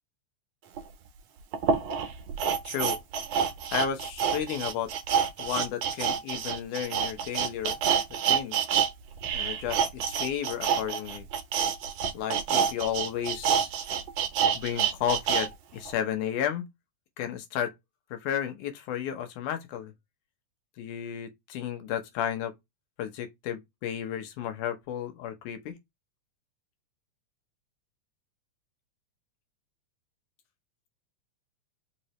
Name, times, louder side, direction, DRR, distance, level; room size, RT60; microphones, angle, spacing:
sound 1, 0.8-0.9 1.5-8.9 9.2-15.5 15.9-16.0, right 7 dB, 70° right, 1.9 m, -27 dB
voice 1, 2.6-3.0 3.7-4.9 5.4-7.8 8.2-8.6 9.3-11.3 12.1-13.7 14.5-16.7 17.2-17.7 18.1-19.9 20.8-22.5 23.0-25.8, left 9 dB, 85° left, 2.5 m, -33 dB
5.4 x 2.8 x 3.0 m
omnidirectional pair, 3.4 m